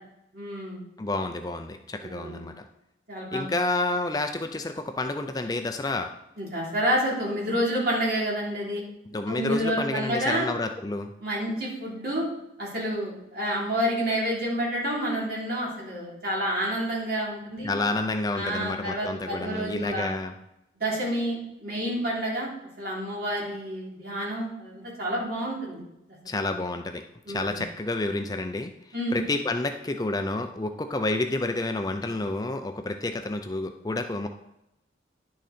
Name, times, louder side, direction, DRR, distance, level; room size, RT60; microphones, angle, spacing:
voice 1, 0.3-0.8 2.0-2.5 3.1-3.5 6.4-8.8 9.3-10.5 11.2-12.3 12.6-17.7 18.3-20.1 20.8-22.5 22.8-26.2 27.2-27.6 28.9-29.2, equal, 55° right, -5 dB, 3.3 m, -29 dB
voice 2, 1.0-2.7 3.3-6.1 9.1-11.1 17.6-20.3 26.3-27.0 27.3-28.7 29.1-34.3, left 2 dB, 20° left, 6 dB, 0.5 m, -29 dB
10.5 x 6.4 x 4.3 m, 0.85 s
head